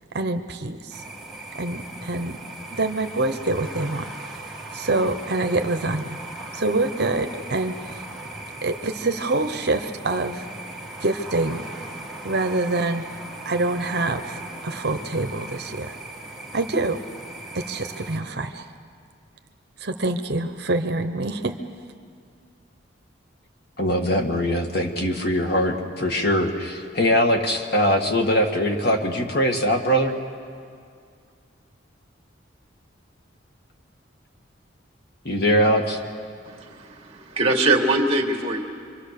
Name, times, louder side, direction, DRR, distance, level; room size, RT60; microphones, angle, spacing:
voice 1, 0.1-1.0 1.6-2.4 2.7-4.5 4.7-6.2 6.5-8.1 8.6-10.5 11.0-11.7 12.2-13.0 13.4-16.0 16.5-17.0 17.5-18.7 19.8-21.6, right 2 dB, 55° right, 7 dB, 1.0 m, -26 dB
sound 1, 0.9-18.2, right 2 dB, ahead, 2.1 m, -38 dB
voice 2, 23.8-30.1 35.3-36.0, equal, 55° left, 3 dB, 1.9 m, -22 dB
voice 3, 36.4-38.6, right 2 dB, 30° right, 2 dB, 2.4 m, -22 dB
26.5 x 25.0 x 6.7 m, 2.2 s
head